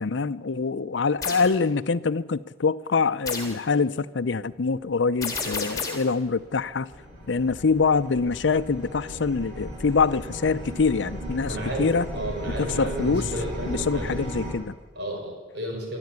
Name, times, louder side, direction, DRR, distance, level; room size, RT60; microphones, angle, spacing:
voice 1, 0.0-6.9 7.3-12.1 12.6-13.3 13.7-14.8, left 4 dB, 85° left, 0.6 m, -25 dB
sound 1, 1.2-1.5 3.3-3.6 5.2-6.1, left 4 dB, 20° left, 3.5 m, -31 dB
sound 2, 5.0-5.1 6.0-14.5, equal, 45° right, 7.4 m, -36 dB
voice 2, 11.5-14.3 15.0-16.0, right 1 dB, 65° right, 6.1 m, -32 dB
25.0 x 13.0 x 9.6 m
head